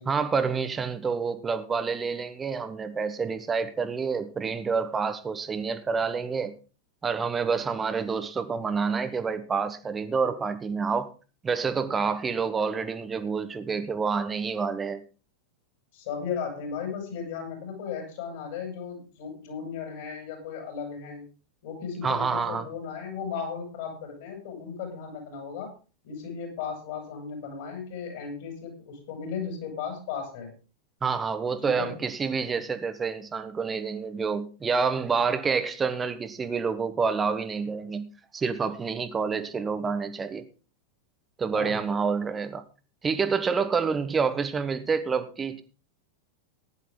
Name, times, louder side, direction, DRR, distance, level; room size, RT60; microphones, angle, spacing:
voice 1, 0.1-6.5 7.0-11.1 11.4-15.0 22.0-22.7 31.0-38.1 38.3-40.4 41.4-42.6 43.0-45.6, right 5 dB, 15° right, 11 dB, 1.2 m, -28 dB
voice 2, 15.9-21.2 21.6-25.7 26.0-30.5 31.6-32.0 41.5-41.8, left 6 dB, 55° left, 3 dB, 6.5 m, -36 dB
15.0 x 10.5 x 3.8 m, 0.34 s
figure-of-eight pair, 90°, 0 cm